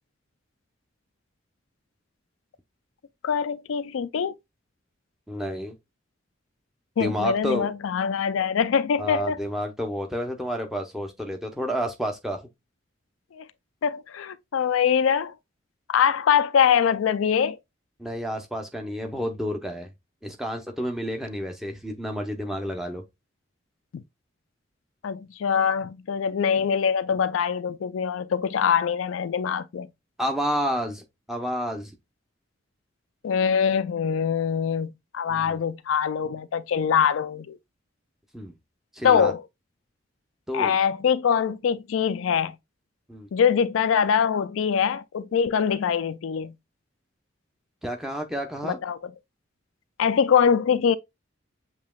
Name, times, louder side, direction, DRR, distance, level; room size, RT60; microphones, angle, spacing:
voice 1, 3.2-4.3 7.0-9.4 13.3-13.5 13.8-15.3 15.9-17.6 23.9-24.0 25.0-29.9 33.2-37.6 39.0-39.4 40.5-42.6 43.3-46.5 48.6-49.0 50.0-51.0, left 7 dB, 90° left, 0.4 m, -23 dB
voice 2, 5.3-5.8 7.0-7.7 9.0-12.4 18.0-19.9 20.2-23.0 30.2-31.9 35.3-35.6 38.3-38.5 38.9-39.3 40.5-40.7 43.1-43.3 47.8-48.8, equal, ahead, 0.7 m, -30 dB
7.3 x 2.9 x 2.3 m
head